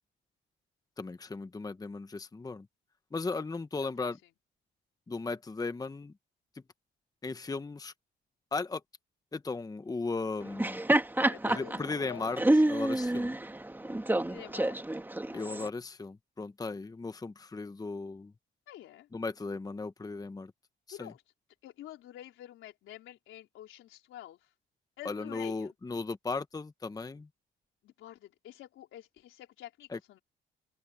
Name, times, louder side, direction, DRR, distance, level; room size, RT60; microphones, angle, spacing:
voice 1, 1.0-2.7 3.1-4.2 5.1-6.1 7.2-7.9 8.5-8.8 9.3-10.8 11.5-12.4 12.7-13.3 15.3-18.3 19.1-20.5 20.9-21.1 25.0-27.3 29.9-30.0, left 3 dB, 20° left, 1.0 m, -36 dB
voice 2, 3.8-4.1 11.2-12.3 14.2-14.8 18.7-19.1 20.9-21.2 21.6-24.4 25.0-25.7 27.8-30.2, left 12 dB, 85° left, 4.1 m, -48 dB
Laughter, 10.4-15.7, right 1 dB, 10° right, 1.8 m, -28 dB
open air
cardioid pair, 90°, 20 cm